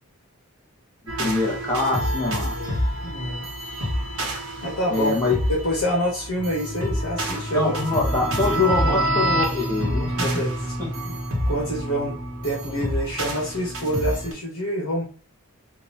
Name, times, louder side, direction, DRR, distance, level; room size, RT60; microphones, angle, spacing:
sound 1, 1.1-14.3, equal, 85° right, 1.1 m, -27 dB
voice 1, 1.2-2.5 4.9-5.4 7.5-10.1 10.8-10.9, left 3 dB, 15° left, -3 dB, 1.1 m, -24 dB
voice 2, 2.5-3.5 4.6-7.7 8.8-9.0 10.2-10.7 11.0-11.2 11.5-12.2 12.4-15.0, equal, 75° left, -3 dB, 1.1 m, -27 dB
3.8 x 2.5 x 2.9 m, 0.39 s
head